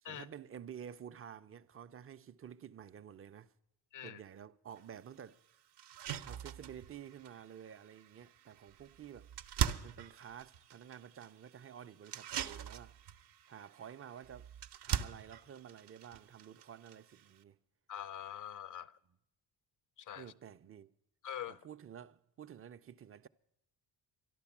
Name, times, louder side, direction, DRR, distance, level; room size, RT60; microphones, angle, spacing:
voice 1, 0.0-3.5 4.0-5.4 6.2-9.3 9.8-13.0 13.5-14.5 14.8-17.6 20.2-20.9 21.5-23.3, right 9 dB, 30° right, 0.5 m, -51 dB
sound 1, 4.8-4.9 5.3-5.4 5.8-17.4, right 9 dB, 60° right, 0.7 m, -42 dB
voice 2, 17.9-18.9 20.1-20.2 21.2-21.6, left 10 dB, 40° left, 0.6 m, -43 dB
12.5 x 11.5 x 7.2 m
cardioid pair, 75°, 47 cm